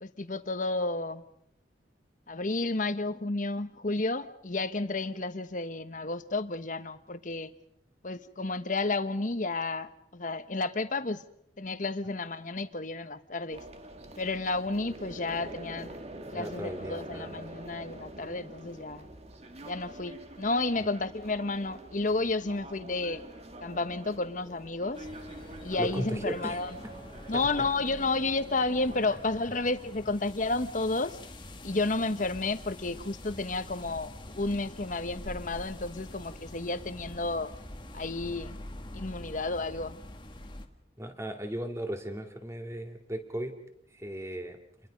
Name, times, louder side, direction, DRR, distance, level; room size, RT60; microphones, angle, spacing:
voice 1, 0.0-1.2 2.3-7.5 8.0-11.2 11.6-13.6 14.2-15.9 16.3-19.1 19.6-23.2 23.6-25.1 25.6-26.7 27.3-31.2 31.6-37.5 37.9-38.6 38.9-40.0, left 3 dB, 45° left, 11 dB, 1.2 m, -31 dB
sound 1, 13.5-29.0, right 1 dB, 35° right, 1.8 m, -46 dB
voice 2, 16.3-17.3 25.8-26.9 27.3-27.7 29.0-29.2 41.0-43.5 43.9-44.6, right 1 dB, 15° right, 5 dB, 2.4 m, -37 dB
sound 2, 24.9-40.7, left 1 dB, 25° left, 1.6 m, -45 dB
29.0 x 22.0 x 5.3 m, 0.72 s
head